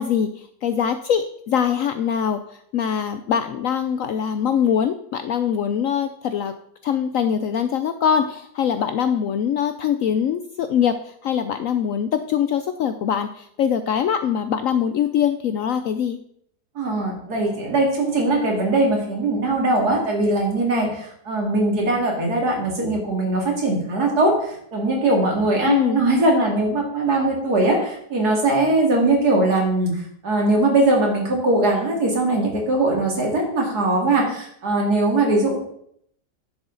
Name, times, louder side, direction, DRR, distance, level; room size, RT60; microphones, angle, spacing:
voice 1, 0.0-6.5 6.8-16.2 25.7-26.0, left 8 dB, 70° left, 9 dB, 0.8 m, -23 dB
voice 2, 16.7-35.6, right 2 dB, 65° right, 0 dB, 2.8 m, -20 dB
10.5 x 7.2 x 3.9 m, 0.69 s
omnidirectional pair, 1.8 m